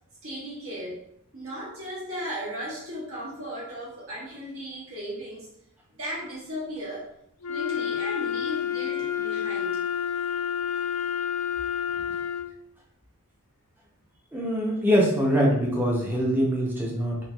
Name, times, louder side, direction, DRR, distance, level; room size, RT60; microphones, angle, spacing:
voice 1, 0.2-1.0 1.3-5.5 6.0-7.1 7.5-9.8, equal, 65° right, -6 dB, 1.2 m, -36 dB
Wind instrument woodwind instrument, 7.4-12.6, left 8 dB, 70° left, 0.4 m, -29 dB
voice 2, 14.3-17.2, equal, 10° right, -2 dB, 0.5 m, -23 dB
3.1 x 2.6 x 2.2 m, 0.72 s
head